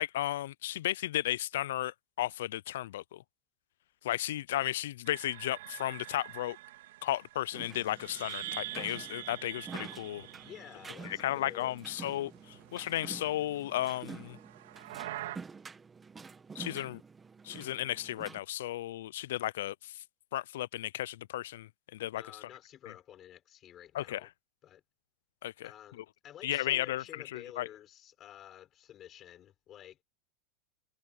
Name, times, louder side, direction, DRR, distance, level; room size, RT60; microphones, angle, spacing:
voice 1, 0.0-3.2 4.0-6.6 7.0-10.3 11.0-14.4 16.6-17.0 17.4-19.9 20.3-22.2 23.9-24.2 25.4-25.7 26.0-26.1 26.4-27.0 27.3-27.7, left 14 dB, 80° left, 0.5 m, -34 dB
sound 1, 5.1-11.7 12.0-13.4 14.3-15.4, right 15 dB, 80° right, 2.2 m, -45 dB
sound 2, 7.5-18.4, right 5 dB, 15° right, 1.3 m, -48 dB
voice 2, 10.4-11.7 22.2-24.3 24.6-24.8 25.6-30.0, left 11 dB, 30° left, 5.5 m, -51 dB
supercardioid pair, 155°, 0 cm